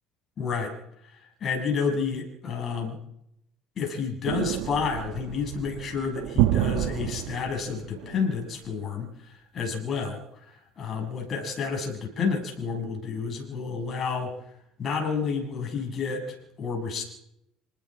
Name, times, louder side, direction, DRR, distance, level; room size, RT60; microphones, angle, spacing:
voice 1, 0.4-0.7 1.1-3.0 3.8-14.3 14.8-17.0, left 5 dB, 40° left, 2 dB, 7.3 m, -30 dB
sound 1, 4.3-8.4, right 15 dB, 80° right, 1.1 m, -29 dB
26.5 x 20.0 x 5.0 m, 0.78 s
supercardioid pair, 105°, 0 cm